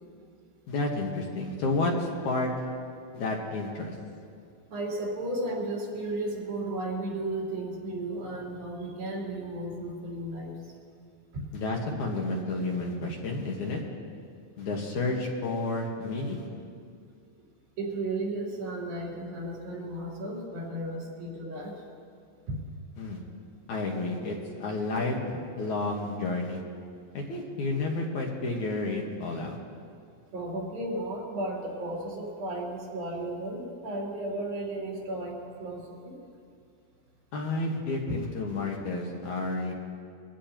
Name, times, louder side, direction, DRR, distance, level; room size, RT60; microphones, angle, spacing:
voice 1, 0.7-2.7 3.1-3.9 11.5-13.8 14.6-16.4 23.0-23.2 23.7-25.2 25.6-26.6 27.1-29.6 37.3-39.7, left 2 dB, 60° left, -1 dB, 2.7 m, -31 dB
voice 2, 4.7-10.6 11.3-11.4 17.8-21.8 22.5-22.6 30.3-36.2 38.1-38.2, right 1 dB, 80° right, -5 dB, 5.2 m, -34 dB
23.5 x 15.5 x 3.0 m, 2.3 s
omnidirectional pair, 4.1 m